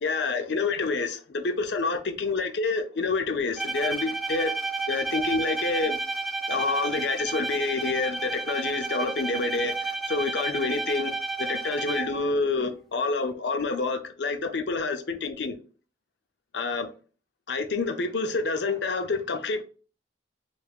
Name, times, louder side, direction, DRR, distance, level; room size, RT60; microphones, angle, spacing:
voice 1, 0.0-4.5 4.9-6.0 6.5-11.1 11.4-15.6 16.5-16.9 17.5-19.6, left 3 dB, 75° left, 0.6 m, -28 dB
Bowed string instrument, 3.6-12.3, right 3 dB, ahead, 0.5 m, -31 dB
3.4 x 3.2 x 2.4 m
head